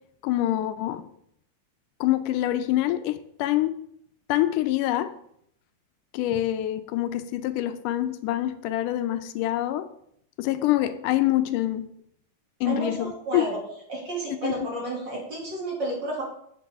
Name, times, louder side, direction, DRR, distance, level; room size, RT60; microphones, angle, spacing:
voice 1, 0.2-1.0 2.0-3.8 4.3-5.1 6.1-9.9 10.4-11.9 12.6-13.4 14.4-14.7, left 14 dB, 85° left, 11 dB, 2.2 m, -25 dB
voice 2, 12.6-13.6 13.9-16.2, right 2 dB, 40° right, -3 dB, 2.7 m, -31 dB
10.0 x 7.3 x 3.5 m, 0.71 s
omnidirectional pair, 3.6 m